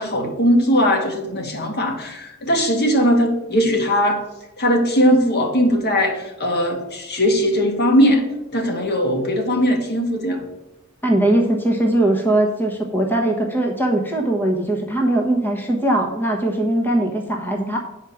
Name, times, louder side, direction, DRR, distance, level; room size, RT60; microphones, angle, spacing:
voice 1, 0.0-4.2 4.6-8.2 8.5-10.4, equal, 50° left, 4 dB, 1.6 m, -19 dB
voice 2, 11.0-17.8, right 1 dB, 10° left, 1 dB, 1.1 m, -20 dB
9.2 x 4.9 x 7.0 m, 0.93 s
head